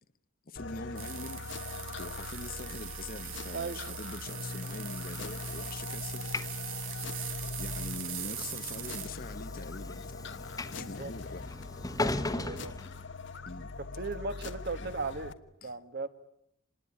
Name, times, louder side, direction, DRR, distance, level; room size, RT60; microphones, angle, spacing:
voice 1, 0.5-1.7 2.0-6.3 7.6-10.4 10.7-11.5 13.5-13.7 14.8-14.9 15.6-15.7, left 3 dB, 45° left, 0.9 m, -43 dB
sound 1, 0.6-15.3, left 3 dB, 60° left, 1.3 m, -41 dB
sound 2, 1.0-9.1, right 11 dB, 75° right, 2.3 m, -42 dB
Train / Sliding door, 4.3-13.6, left 2 dB, 20° left, 1.3 m, -40 dB
voice 2, 10.7-11.1 11.9-12.8 14.0-15.3 15.6-16.1, right 3 dB, 50° right, 1.6 m, -37 dB
27.0 x 20.0 x 9.9 m
head